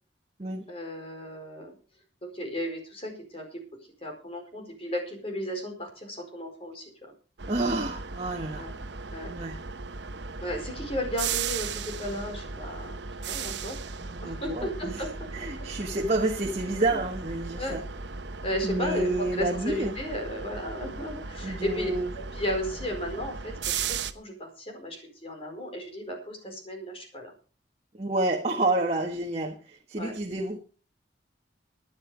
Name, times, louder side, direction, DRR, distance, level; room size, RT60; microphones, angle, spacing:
voice 1, 0.7-1.7 2.3-3.6 4.0-7.1 8.5-8.7 9.1-9.3 10.4-13.8 14.2-15.1 16.9-17.1 17.6-17.8 18.4-23.8 24.1-27.3 30.0-30.1, equal, 30° left, 3 dB, 4.7 m, -34 dB
sound 1, 7.4-24.1, right 5 dB, 75° right, 1.0 m, -37 dB
voice 2, 7.5-8.7 9.3-9.6 14.0-15.0 15.3-17.8 18.6-20.0 21.4-22.1 27.9-30.6, right 2 dB, 35° right, 1 dB, 1.4 m, -29 dB
14.0 x 10.0 x 5.1 m, 0.38 s
head